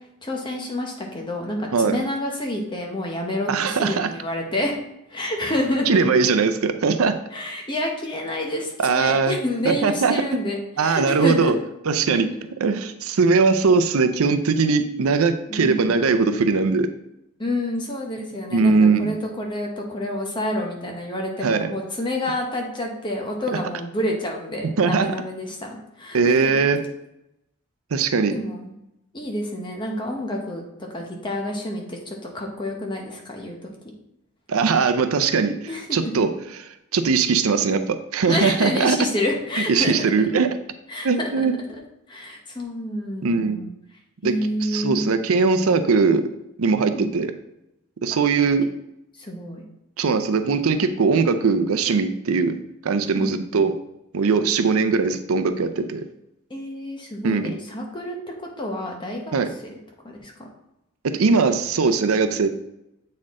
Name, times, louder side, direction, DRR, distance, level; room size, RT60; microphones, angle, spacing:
voice 1, 0.2-4.8 5.1-6.2 7.3-11.5 12.1-12.2 15.5-16.0 17.4-26.8 28.3-28.7 29.1-33.7 35.7-36.4 38.3-40.3 40.9-41.5 42.1-43.7 44.2-45.1 46.9-47.1 49.2-49.6 53.0-53.6 56.5-58.2 58.6-59.3 60.0-60.5, left 1 dB, 20° left, 0 dB, 1.0 m, -28 dB
voice 2, 3.5-4.1 5.9-7.1 8.8-9.4 9.6-10.2 10.8-11.6 11.8-12.3 12.6-16.9 18.5-19.2 21.4-21.7 24.8-25.1 26.1-26.8 27.9-28.4 34.5-35.5 35.9-36.3 36.9-39.0 39.7-40.5 41.0-41.5 43.2-43.6 44.2-44.3 44.6-46.2 46.6-47.3 48.0-48.6 50.0-52.5 52.8-53.7 54.1-56.0 57.2-57.5 59.3-59.5 61.0-62.5, right 4 dB, 80° right, 9 dB, 0.5 m, -20 dB
7.6 x 4.3 x 3.7 m, 0.86 s
head